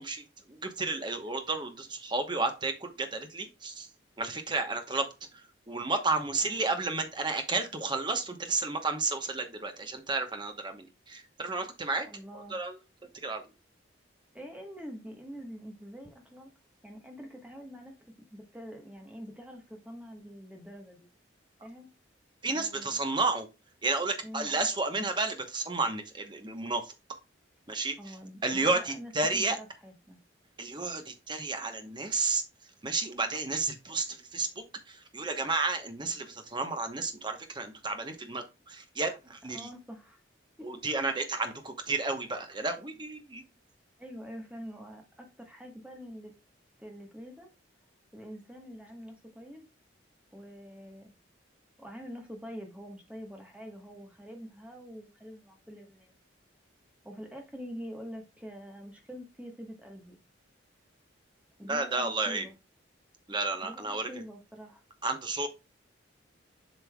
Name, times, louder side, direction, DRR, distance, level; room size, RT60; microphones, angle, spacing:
voice 1, 0.0-3.9 4.2-5.1 5.3-12.1 12.5-12.8 13.2-13.4 22.4-23.5 23.8-26.9 27.7-28.2 28.4-29.6 30.6-32.4 32.8-39.7 40.6-43.4 61.7-62.5 63.3-64.1 65.0-65.5, right 3 dB, 25° right, 1.0 m, -32 dB
voice 2, 12.1-12.6 14.3-16.5 16.8-17.9 18.3-21.1 21.6-21.9 22.5-23.0 24.2-24.6 28.0-30.2 39.5-40.2 40.6-40.7 41.3-41.5 44.0-46.3 46.8-47.5 48.1-49.6 50.3-51.1 51.8-56.1 57.0-60.2 61.6-62.5 63.6-64.8, equal, 5° right, 1.2 m, -45 dB
7.9 x 5.4 x 2.3 m
head